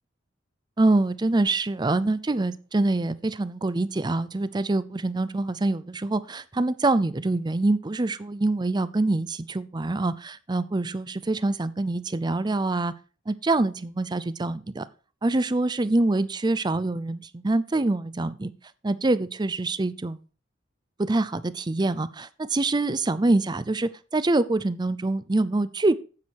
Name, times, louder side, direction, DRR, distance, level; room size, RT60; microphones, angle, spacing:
voice 1, 0.8-12.9 13.3-14.9 15.2-18.5 18.8-20.2 21.0-26.0, right 2 dB, 20° right, 16 dB, 0.5 m, -25 dB
9.7 x 8.0 x 4.6 m, 0.37 s
head